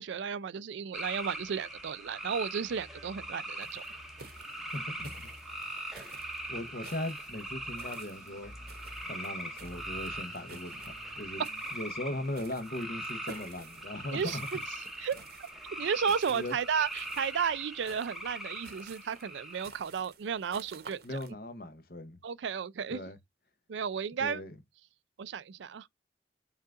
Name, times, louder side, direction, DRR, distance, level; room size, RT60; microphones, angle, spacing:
voice 1, 0.0-3.8 14.1-14.6 15.0-15.2 15.8-21.0 22.2-23.0 23.7-24.4 25.2-25.9, right 6 dB, 80° right, 0.4 m, -33 dB
sound 1, 0.9-19.9, right 1 dB, ahead, 0.7 m, -41 dB
sound 2, 2.6-11.9, left 1 dB, 15° left, 2.0 m, -54 dB
sound 3, 3.6-21.3, right 5 dB, 55° right, 0.8 m, -54 dB
voice 2, 4.7-5.3 6.5-8.5 9.1-11.4 11.7-14.5 16.3-16.5 21.0-22.2 22.9-23.2 24.2-24.6, left 1 dB, 50° left, 0.8 m, -39 dB
5.5 x 2.4 x 3.6 m
head